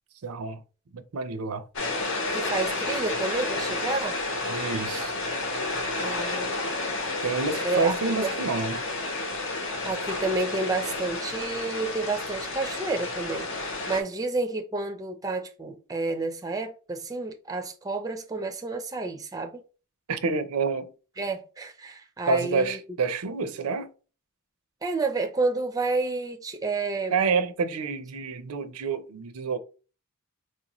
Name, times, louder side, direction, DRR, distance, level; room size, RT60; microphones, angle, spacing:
voice 1, 0.2-0.6 0.9-1.6 4.5-5.1 7.2-8.8 20.1-20.9 22.3-23.9 27.1-29.6, right 4 dB, 85° right, 0.5 m, -28 dB
sound 1, 1.8-14.0, left 2 dB, 60° left, 0.9 m, -31 dB
voice 2, 2.3-4.2 6.0-6.6 7.6-7.9 8.2-8.3 9.8-19.6 21.2-22.8 24.8-27.2, right 3 dB, 15° right, 0.4 m, -30 dB
4.4 x 2.5 x 2.9 m
head